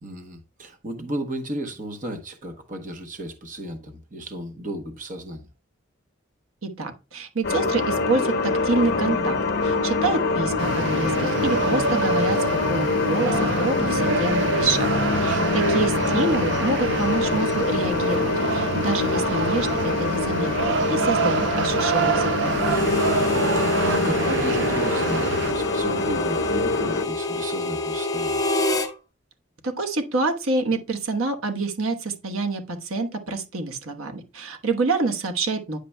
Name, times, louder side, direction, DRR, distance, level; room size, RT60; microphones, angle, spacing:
voice 1, 0.0-5.5 15.2-15.5 22.9-23.3 23.6-28.5, right 1 dB, 40° right, 0.9 m, -34 dB
voice 2, 6.6-14.9 15.2-22.7 29.6-35.8, right 3 dB, 90° right, 1.1 m, -27 dB
sound 1, 7.4-27.0, left 3 dB, 50° left, 0.8 m, -25 dB
sound 2, 10.6-25.5, right 5 dB, 60° right, 0.5 m, -27 dB
Harmonica, 22.6-28.9, left 2 dB, 15° left, 0.7 m, -27 dB
9.6 x 6.6 x 2.2 m
head